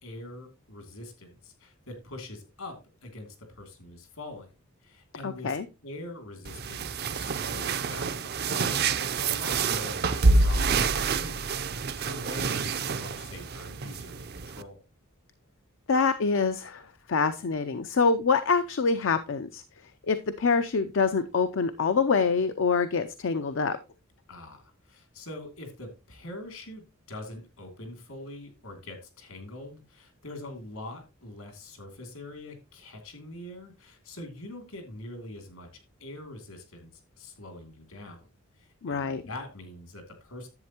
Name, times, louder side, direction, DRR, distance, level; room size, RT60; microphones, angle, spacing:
voice 1, 0.0-2.7 3.0-4.5 4.8-5.6 5.8-14.8 24.3-36.9 37.2-38.3 38.6-40.5, left 1 dB, 75° left, 5 dB, 2.8 m, -44 dB
voice 2, 5.2-5.6 15.9-16.8 17.1-19.6 20.1-23.8 38.8-39.2, left 5 dB, 60° left, 11 dB, 0.5 m, -25 dB
sound 1, 6.4-14.6, right 4 dB, 50° right, 0.6 m, -27 dB
10.5 x 7.8 x 2.9 m, 0.27 s
head